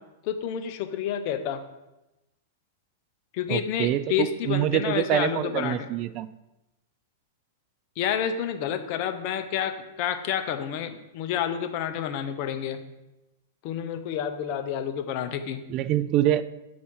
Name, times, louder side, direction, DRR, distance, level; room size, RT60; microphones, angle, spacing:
voice 1, 0.2-1.6 3.3-5.9 8.0-9.7 10.0-12.8 13.6-15.6, left 9 dB, 50° left, 8 dB, 0.7 m, -29 dB
voice 2, 3.5-6.3 15.7-16.4, right 12 dB, 40° right, 15 dB, 0.3 m, -25 dB
7.1 x 4.1 x 4.7 m, 0.99 s
hypercardioid pair, 125°, 0 cm